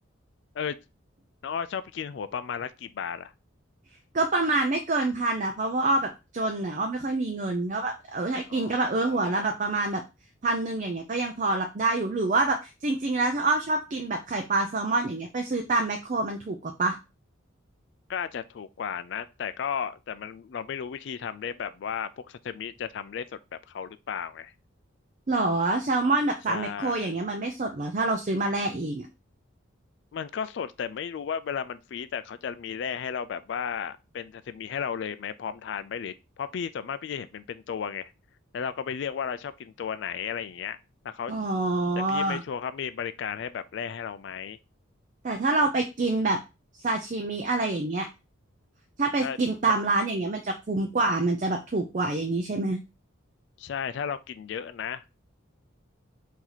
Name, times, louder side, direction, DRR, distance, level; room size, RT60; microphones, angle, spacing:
voice 1, 1.4-3.3 8.5-9.5 18.1-24.5 26.5-27.1 30.1-38.1 38.5-40.8 41.0-41.3 42.1-44.6 49.2-49.4 53.6-55.2, left 7 dB, 55° left, 0.3 m, -34 dB
voice 2, 4.1-10.0 10.4-17.0 25.3-29.1 41.3-42.4 45.2-46.4 46.8-48.1 49.0-52.8, right 2 dB, 40° right, 0.5 m, -26 dB
4.5 x 2.7 x 3.9 m
head